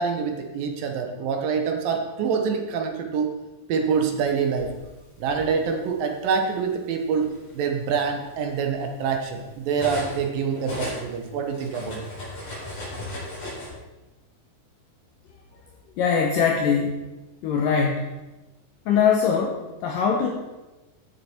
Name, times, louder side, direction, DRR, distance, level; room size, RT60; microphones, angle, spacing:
voice 1, 0.0-3.3 3.7-4.7 5.2-12.0, right 6 dB, 70° right, 3 dB, 2.7 m, -26 dB
Cutlery silverware, 4.2-5.4 6.4-6.6 7.0-10.3 10.5-13.7, left 1 dB, 40° left, 5.0 m, -37 dB
voice 2, 16.0-17.0 17.4-18.2 18.9-20.3, left 6 dB, 70° left, 1 dB, 2.4 m, -22 dB
14.0 x 6.7 x 4.5 m, 1.1 s
omnidirectional pair, 4.5 m